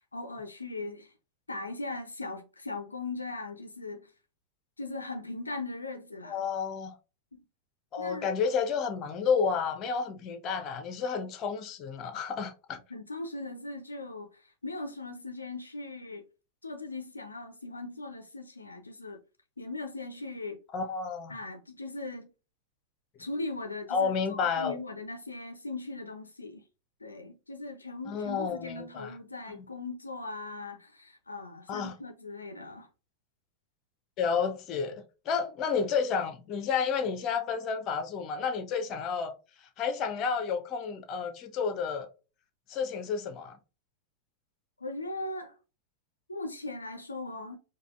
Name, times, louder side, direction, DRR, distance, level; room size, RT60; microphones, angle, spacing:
voice 1, 0.1-1.1 1.5-4.1 4.8-6.4 7.3-7.4 8.0-8.3 12.9-16.2 16.6-19.2 19.6-20.6 21.3-22.3 23.2-26.6 27.0-32.9 44.8-45.6 46.3-47.6, left 2 dB, 80° left, 0.5 m, -39 dB
voice 2, 6.3-7.0 7.9-12.8 20.7-21.3 23.9-24.8 28.1-29.1 31.7-31.9 34.2-39.3 39.8-42.1 42.7-43.6, left 6 dB, 35° left, 0.7 m, -31 dB
4.8 x 2.4 x 2.4 m
figure-of-eight pair, 90°, 0 cm